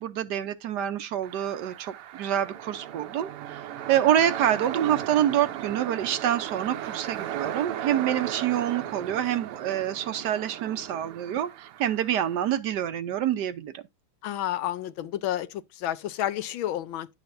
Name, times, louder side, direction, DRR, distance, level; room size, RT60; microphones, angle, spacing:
voice 1, 0.0-13.8, right 10 dB, 70° right, 1.0 m, -27 dB
sound 1, 1.2-12.6, right 11 dB, 85° right, 1.7 m, -36 dB
voice 2, 14.2-17.1, left 12 dB, 75° left, 1.3 m, -30 dB
10.5 x 6.7 x 2.5 m
omnidirectional pair, 2.4 m